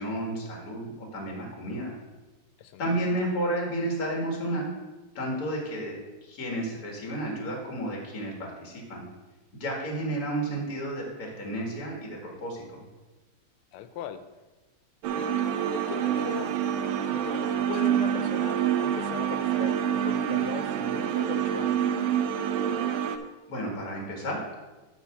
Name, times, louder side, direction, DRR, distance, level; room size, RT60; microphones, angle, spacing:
voice 1, 0.0-1.9 2.8-4.7 5.2-9.0 9.5-12.8 23.5-24.4, right 1 dB, 45° left, -1 dB, 2.2 m, -32 dB
voice 2, 2.6-2.9 13.7-14.2 15.4-16.5 17.1-21.9, left 9 dB, 85° left, 10 dB, 1.5 m, -40 dB
sound 1, 15.0-23.2, right 9 dB, 75° right, 1.3 m, -27 dB
9.0 x 3.8 x 7.1 m, 1.1 s
omnidirectional pair, 2.3 m